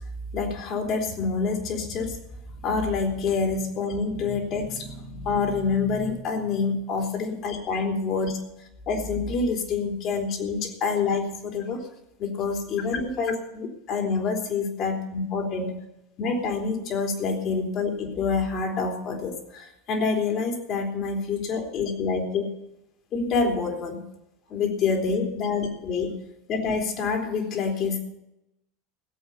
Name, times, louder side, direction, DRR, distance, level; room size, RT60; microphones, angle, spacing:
voice 1, 0.3-2.2 2.6-8.4 8.9-11.9 12.2-15.7 16.2-22.4 23.1-24.0 24.5-26.1 26.5-28.0, left 4 dB, 45° left, 3 dB, 3.8 m, -27 dB
18.0 x 8.3 x 6.9 m, 0.86 s
hypercardioid pair, 80°, 0 cm